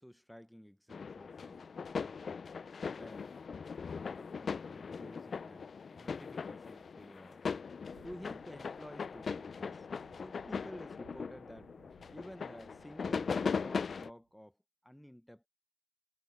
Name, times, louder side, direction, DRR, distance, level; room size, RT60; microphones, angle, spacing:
voice 1, 0.0-2.5 2.9-3.4 3.8-7.5 8.0-9.9 10.2-11.7 12.1-14.6 14.8-15.5, equal, ahead, 1.0 m, -52 dB
sound 1, 0.9-14.1, left 5 dB, 40° left, 0.5 m, -40 dB
sound 2, 7.9-14.2, right 13 dB, 80° right, 0.7 m, -64 dB
cardioid pair, 90°, 0 cm